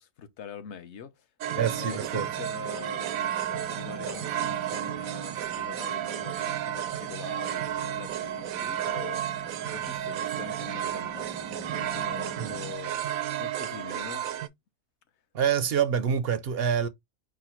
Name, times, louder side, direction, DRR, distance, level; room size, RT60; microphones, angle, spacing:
voice 1, 0.0-13.0 13.4-14.3, left 7 dB, 60° left, 1.0 m, -44 dB
sound 1, 1.4-14.5, right 11 dB, 85° right, 1.1 m, -32 dB
sound 2, 1.5-12.7, right 3 dB, 5° right, 0.4 m, -46 dB
voice 2, 1.6-2.3 12.4-12.5 15.3-16.9, right 8 dB, 60° right, 0.7 m, -26 dB
4.8 x 2.2 x 4.3 m
omnidirectional pair, 1.4 m